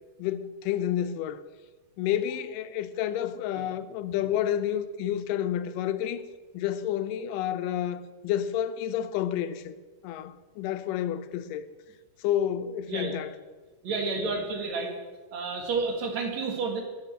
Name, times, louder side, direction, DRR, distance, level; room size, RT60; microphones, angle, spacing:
voice 1, 0.2-1.4 2.0-6.2 6.5-9.7 10.0-11.7 12.2-13.3 14.2-14.3, left 10 dB, 90° left, 2.3 m, -30 dB
voice 2, 13.8-14.9 15.3-16.8, right 4 dB, 60° right, 2.8 m, -30 dB
9.0 x 7.4 x 7.7 m
omnidirectional pair, 3.7 m